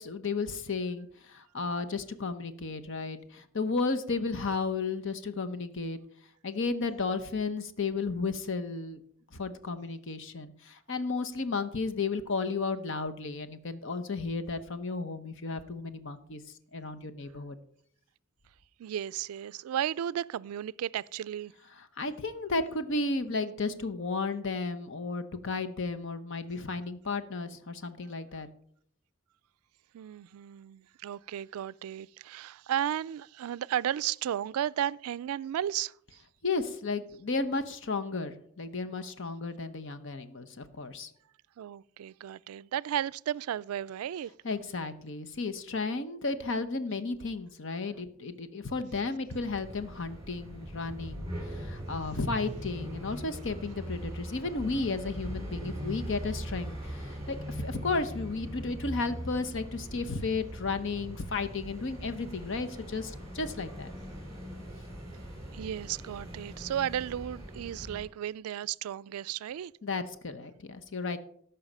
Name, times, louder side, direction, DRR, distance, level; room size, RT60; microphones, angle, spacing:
voice 1, 0.0-6.0 6.4-9.0 9.3-16.4 16.7-17.6 22.0-28.5 36.4-41.1 44.4-63.9 69.8-71.2, left 3 dB, 60° left, 0.8 m, -33 dB
voice 2, 18.8-21.5 29.9-35.9 41.6-44.3 65.5-69.7, right 10 dB, 90° right, 0.3 m, -34 dB
sound 1, 49.3-68.0, equal, 15° right, 3.2 m, -41 dB
14.0 x 5.7 x 5.3 m
head